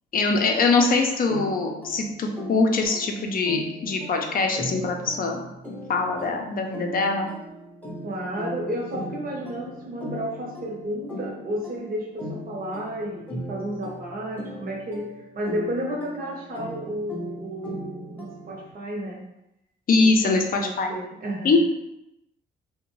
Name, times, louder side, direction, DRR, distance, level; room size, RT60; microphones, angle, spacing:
voice 1, 0.1-5.4 5.9-7.3 19.9-20.9 21.4-21.7, left 3 dB, 45° left, 3 dB, 0.5 m, -23 dB
sound 1, 1.3-18.7, equal, 10° left, 0.7 m, -38 dB
voice 2, 8.0-19.3 20.0-21.7, equal, 45° right, -1 dB, 0.8 m, -32 dB
2.5 x 2.2 x 3.0 m, 0.86 s
cardioid pair, 90°, 20 cm